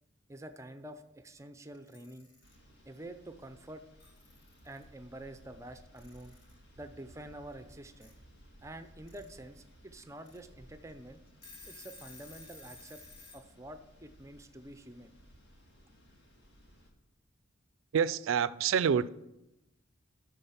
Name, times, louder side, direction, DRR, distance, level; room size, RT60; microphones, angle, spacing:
voice 1, 0.3-2.3 2.8-3.8 4.6-6.4 6.8-8.1 8.6-11.2 11.6-13.0 13.3-15.2, right 1 dB, 15° right, 0.5 m, -48 dB
Alarm / Clock, 1.7-2.5 3.7-3.8 4.0-4.8 6.0-6.6 8.0-8.1 8.9-9.3 9.7-9.8 10.2-10.4 10.9-11.0 11.3-13.4, left 3 dB, 70° left, 3.6 m, -53 dB
sound 1, 2.4-16.9, equal, 55° left, 1.8 m, -59 dB
voice 2, 17.9-19.1, right 7 dB, 80° right, 0.4 m, -27 dB
12.0 x 4.6 x 5.8 m
head